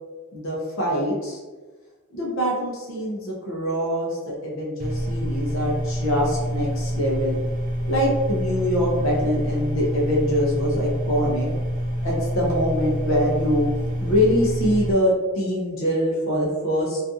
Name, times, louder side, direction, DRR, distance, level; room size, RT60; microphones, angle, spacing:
voice 1, 0.3-1.4 2.1-7.4 7.9-11.5 12.0-13.7 14.0-17.0, equal, 60° left, -3 dB, 0.5 m, -24 dB
sound 1, 4.8-14.9, equal, 35° right, 0.4 m, -27 dB
2.5 x 2.3 x 2.6 m, 1.3 s
head